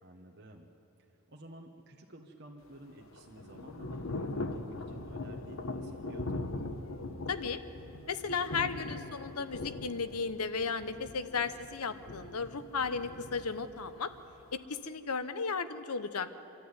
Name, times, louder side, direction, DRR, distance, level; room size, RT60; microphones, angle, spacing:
voice 1, 0.0-0.7 1.1-6.8, right 1 dB, 50° right, 1 dB, 1.3 m, -52 dB
Thunder / Rain, 2.6-14.6, left 2 dB, 65° left, 1.0 m, -41 dB
voice 2, 7.3-7.6 8.1-14.1 14.5-16.4, left 5 dB, 90° left, 11 dB, 1.0 m, -35 dB
26.0 x 12.5 x 9.7 m, 3.0 s
head